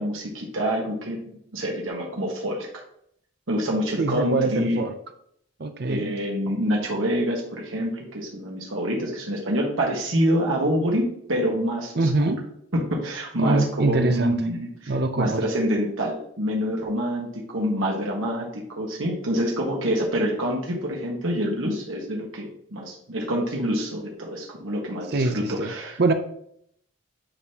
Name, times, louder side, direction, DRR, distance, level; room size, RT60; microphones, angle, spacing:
voice 1, 0.0-2.8 3.5-4.9 5.9-12.3 12.7-26.0, equal, 75° right, -1 dB, 1.5 m, -26 dB
voice 2, 4.0-4.9 5.6-6.1 12.0-12.4 13.4-14.3 14.9-15.4 25.1-25.7 26.0-26.1, right 3 dB, 50° right, 8 dB, 0.5 m, -23 dB
9.7 x 3.9 x 2.8 m, 0.69 s
head